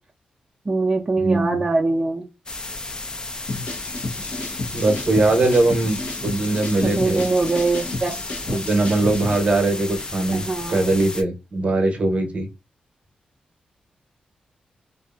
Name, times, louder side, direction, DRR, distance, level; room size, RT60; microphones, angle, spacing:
voice 1, 0.7-2.3 6.8-8.1 10.3-10.9, right 3 dB, 25° right, -1 dB, 0.4 m, -22 dB
voice 2, 1.2-1.6 4.7-7.2 8.5-10.4 10.7-12.5, right 2 dB, 50° right, 5 dB, 0.8 m, -21 dB
sound 1, 2.5-11.2, left 2 dB, 30° left, 0.4 m, -33 dB
sound 2, 3.5-9.4, left 2 dB, 65° left, 0.8 m, -32 dB
2.6 x 2.4 x 2.4 m, 0.25 s
cardioid pair, 65°, 3 cm